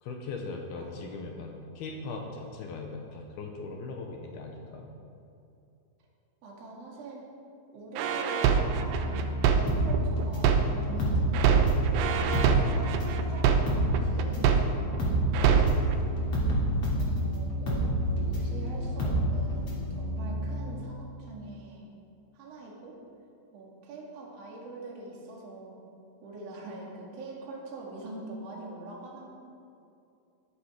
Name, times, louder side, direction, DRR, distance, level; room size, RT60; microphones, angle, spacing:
voice 1, 0.0-4.9 15.4-15.8, left 3 dB, 75° left, 2 dB, 2.3 m, -39 dB
voice 2, 0.8-1.2 6.4-7.3 7.7-11.8 12.3-15.1 16.9-17.9 18.2-21.9 22.3-23.0 23.5-25.8 26.2-29.3, right 2 dB, 45° right, -3 dB, 2.5 m, -43 dB
sound 1, 8.0-11.0 11.3-15.0 15.3-15.9, right 7 dB, 85° right, 2.4 m, -24 dB
sound 2, 8.6-20.7, equal, 60° left, 3.6 m, -34 dB
sound 3, 9.7-11.9 12.2-19.9 20.2-20.3, equal, 35° left, 2.8 m, -29 dB
14.0 x 11.5 x 5.1 m, 2.6 s
omnidirectional pair, 5.8 m